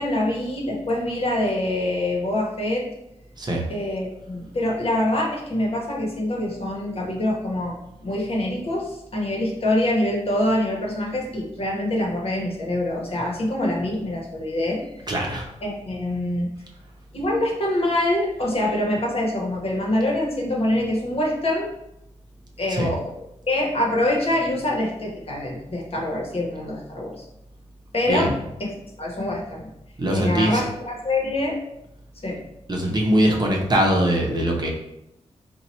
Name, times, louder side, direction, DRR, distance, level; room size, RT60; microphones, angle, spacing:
voice 1, 0.0-2.8 3.7-15.2 15.6-16.5 17.1-21.7 22.6-23.1 23.5-27.2 27.9-28.3 28.6-28.7 29.0-29.7 30.1-31.6 32.2-32.4, left 1 dB, 55° left, -2 dB, 0.9 m, -25 dB
voice 2, 15.1-15.5 22.7-22.9 28.1-28.3 30.0-30.6 32.7-34.7, equal, 35° right, -1 dB, 0.8 m, -21 dB
2.8 x 2.2 x 4.1 m, 0.83 s
wide cardioid pair, 80°, 12 cm